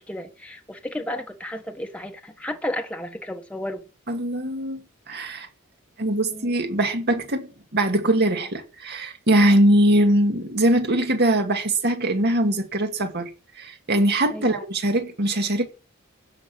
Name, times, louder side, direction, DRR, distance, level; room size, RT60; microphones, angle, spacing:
voice 1, 0.0-3.9 6.3-6.5 14.3-14.6, left 1 dB, 5° left, 1.2 m, -33 dB
voice 2, 4.1-5.5 6.0-13.3 13.6-15.7, right 1 dB, 50° right, 2.3 m, -22 dB
15.5 x 6.3 x 8.6 m
head